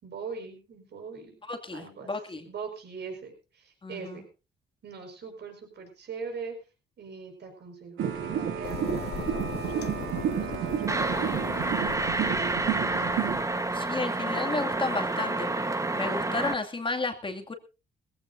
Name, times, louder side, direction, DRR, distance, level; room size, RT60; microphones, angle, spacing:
voice 1, 0.0-1.4 1.7-2.1 2.5-4.3 4.8-6.6 7.0-12.9, right 5 dB, 60° right, 3 dB, 5.2 m, -42 dB
voice 2, 1.5-2.4 3.8-4.2 13.7-15.5 15.9-17.5, left 3 dB, 25° left, 4 dB, 2.4 m, -32 dB
sound 1, 8.0-13.4, right 9 dB, 80° right, 2.3 m, -31 dB
sound 2, 8.6-13.9, left 8 dB, 55° left, 1.1 m, -40 dB
sound 3, 10.9-16.5, right 2 dB, 15° right, 1.2 m, -29 dB
20.5 x 15.5 x 2.7 m, 0.29 s
cardioid pair, 90°, 20 cm